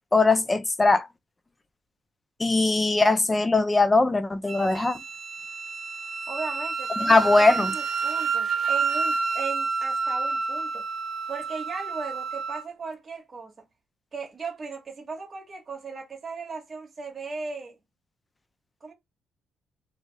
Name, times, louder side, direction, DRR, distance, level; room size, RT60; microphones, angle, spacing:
voice 1, 0.1-1.1 2.4-5.0 7.0-7.7, left 3 dB, 20° left, 0.4 m, -20 dB
Wind instrument woodwind instrument, 4.5-12.7, right 4 dB, 55° right, 0.4 m, -29 dB
voice 2, 6.3-10.9 11.3-13.7 14.1-17.8 18.8-18.9, right 4 dB, 35° right, 1.2 m, -37 dB
2.6 x 2.0 x 3.3 m
cardioid pair, 90°, 0 cm